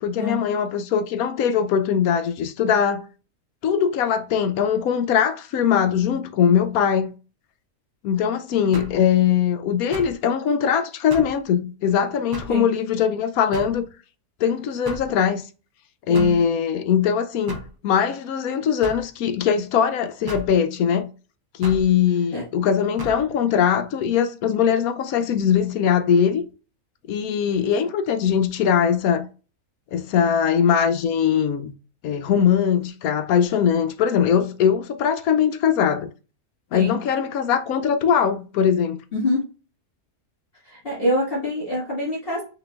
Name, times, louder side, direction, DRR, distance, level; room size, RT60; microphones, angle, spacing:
voice 1, 0.0-3.0 3.6-7.1 8.0-13.8 14.4-15.4 16.1-17.6 17.8-21.1 21.5-26.4 27.1-29.3 29.9-31.7 32.0-36.1 36.7-39.0, left 8 dB, 75° left, 1.1 m, -21 dB
sound 1, 8.7-9.0 9.9-10.2 11.1-11.4 12.3-12.6 13.5-13.8 14.9-15.1 16.1-16.4 17.5-17.7 18.8-19.1 20.3-20.5 21.6-21.9 23.0-23.2, right 2 dB, 30° right, 0.4 m, -35 dB
voice 2, 39.1-39.5 40.6-42.4, left 1 dB, 40° left, 1.9 m, -25 dB
5.6 x 3.9 x 2.4 m
omnidirectional pair, 1.6 m